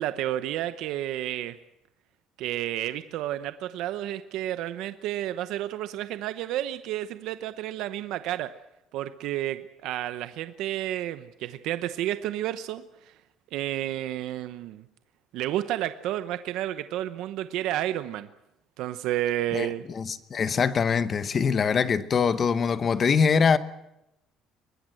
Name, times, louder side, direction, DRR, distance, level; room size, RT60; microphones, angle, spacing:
voice 1, 0.0-1.5 2.4-8.5 8.9-13.1 13.5-14.8 15.3-18.3 18.8-19.8, right 13 dB, 65° right, 0.8 m, -31 dB
voice 2, 19.5-23.6, left 6 dB, 25° left, 0.9 m, -23 dB
23.0 x 19.0 x 7.8 m
cardioid pair, 175°, 0 cm